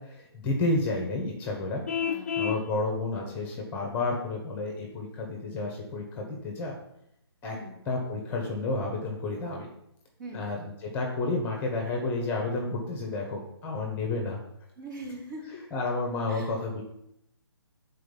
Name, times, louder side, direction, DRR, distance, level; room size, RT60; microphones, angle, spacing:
voice 1, 0.0-1.8 2.4-6.7 7.4-7.5 7.9-9.7 10.3-14.4 15.7-16.8, left 2 dB, 15° left, 0 dB, 1.1 m, -31 dB
Vehicle horn car horn honking, 1.9-2.6, left 8 dB, 35° left, 0.4 m, -29 dB
voice 2, 2.0-2.4 7.5-7.8 10.2-10.5 14.8-15.6 16.3-16.5, right 1 dB, 45° right, -1 dB, 2.4 m, -41 dB
6.4 x 4.1 x 5.4 m, 0.78 s
figure-of-eight pair, 140°, 14 cm